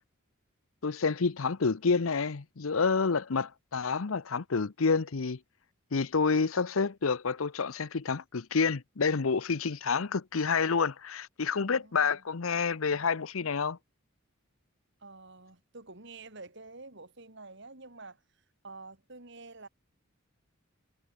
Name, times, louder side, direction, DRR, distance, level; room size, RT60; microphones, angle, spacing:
voice 1, 0.8-5.4 5.9-13.8, left 5 dB, 80° left, 0.8 m, -28 dB
voice 2, 11.6-12.2 15.0-18.2 18.6-19.7, right 3 dB, 60° right, 3.5 m, -48 dB
head